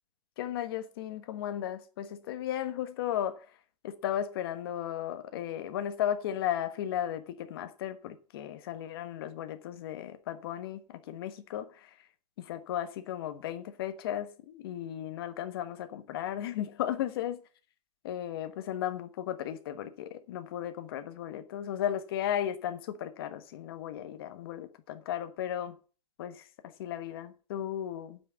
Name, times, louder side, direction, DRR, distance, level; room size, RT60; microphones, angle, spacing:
voice 1, 0.4-3.5 3.8-11.9 12.4-17.4 18.0-25.8 26.2-28.2, left 10 dB, 35° left, 1.2 m, -35 dB
9.2 x 6.1 x 7.8 m
hypercardioid pair, 170°, 20 cm